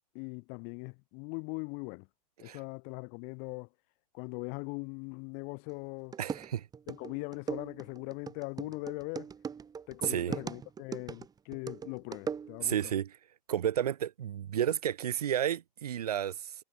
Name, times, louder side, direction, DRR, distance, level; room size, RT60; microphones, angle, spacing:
voice 1, 0.1-2.1 2.4-3.7 4.1-6.2 6.9-9.3 9.9-12.9, left 37 dB, 45° left, 4.1 m, -40 dB
sound 1, 5.7-5.8 6.1-12.8, right 6 dB, 20° right, 6.1 m, -40 dB
voice 2, 6.2-6.7 10.0-10.4 12.6-13.2 13.5-16.6, right 10 dB, 80° right, 3.7 m, -32 dB
hypercardioid pair, 115°, 20 cm